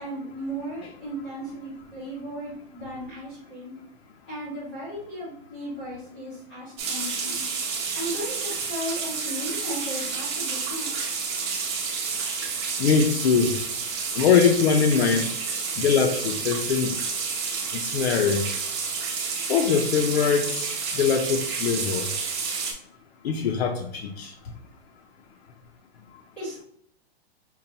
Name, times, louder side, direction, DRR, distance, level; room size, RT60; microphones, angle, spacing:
voice 1, 0.0-3.7 4.3-7.4 7.9-10.9 26.4-26.6, equal, 5° left, -11 dB, 0.3 m, -36 dB
sound 1, 6.8-22.7, right 5 dB, 25° right, 0.7 m, -30 dB
voice 2, 12.8-13.6 14.1-15.3 15.8-16.9 17.7-18.5 19.5-22.1 23.2-24.3, left 6 dB, 85° left, 3 dB, 0.6 m, -22 dB
5.5 x 2.2 x 2.7 m, 0.67 s
supercardioid pair, 175°, 31 cm